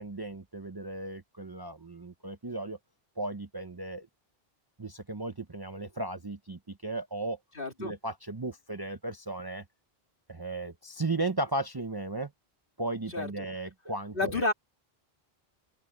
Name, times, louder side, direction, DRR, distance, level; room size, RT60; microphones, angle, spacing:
voice 1, 0.0-2.8 3.2-4.1 4.8-7.4 7.8-9.6 10.3-12.3 12.8-14.5, right 2 dB, 25° right, 0.8 m, -35 dB
voice 2, 7.6-7.9 13.1-13.3 14.1-14.5, left 2 dB, 60° left, 3.4 m, -29 dB
open air
omnidirectional pair, 1.0 m